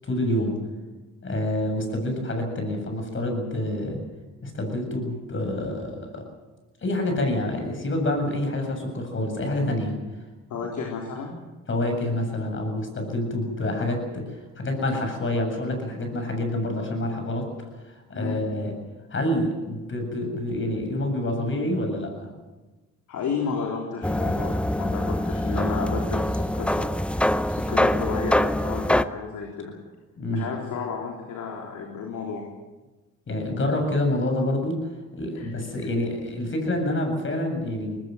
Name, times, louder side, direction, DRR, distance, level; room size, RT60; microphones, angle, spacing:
voice 1, 0.0-0.6 1.2-4.0 4.4-6.2 6.8-10.0 11.7-17.5 17.8-18.7 19.1-22.3 30.2-30.5 33.3-34.8 35.1-38.0, left 1 dB, 40° left, 4 dB, 7.8 m, -27 dB
voice 2, 10.5-11.4 18.1-18.4 23.1-29.7 30.3-32.5 35.4-35.5, left 5 dB, 75° left, 0 dB, 3.8 m, -32 dB
sound 1, 24.0-29.0, left 1 dB, 5° left, 0.7 m, -24 dB
21.0 x 20.0 x 7.9 m, 1.2 s
cardioid pair, 90°, 30 cm